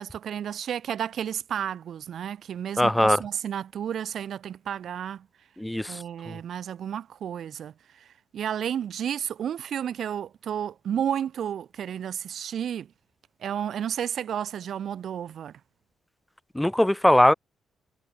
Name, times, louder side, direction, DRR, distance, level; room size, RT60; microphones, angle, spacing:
voice 1, 0.0-5.3 5.9-8.1 8.3-12.9 13.4-15.6, right 9 dB, 65° right, 0.9 m, -32 dB
voice 2, 2.8-3.2 5.6-5.9 6.3-6.4 16.6-17.3, left 1 dB, 5° left, 0.5 m, -20 dB
cardioid pair, 90°, 0 cm